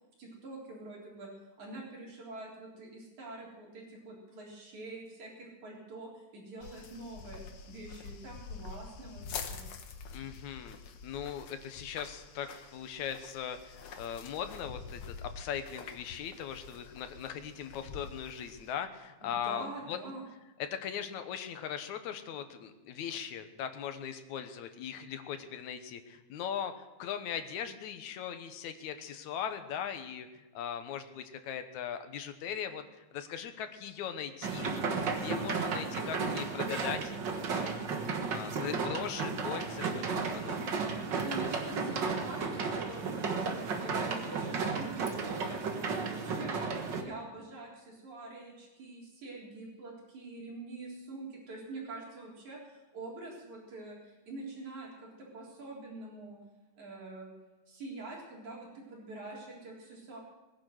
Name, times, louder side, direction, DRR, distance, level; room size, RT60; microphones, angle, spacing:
voice 1, 0.2-1.3 1.6-9.6 19.2-20.2 41.1-45.7 46.1-46.6 47.0-56.4 56.7-57.3 57.7-60.2, right 2 dB, 80° right, -3 dB, 5.2 m, -45 dB
sound 1, 6.6-18.7, left 5 dB, 55° left, 1.8 m, -46 dB
voice 2, 10.1-10.8 11.0-20.0 20.6-37.1 37.5-37.8 38.3-40.7, left 8 dB, 80° left, 8 dB, 2.4 m, -39 dB
sound 2, 34.4-47.0, right 4 dB, 45° right, 1.7 m, -34 dB
21.0 x 10.5 x 6.5 m, 1.1 s
omnidirectional pair, 3.3 m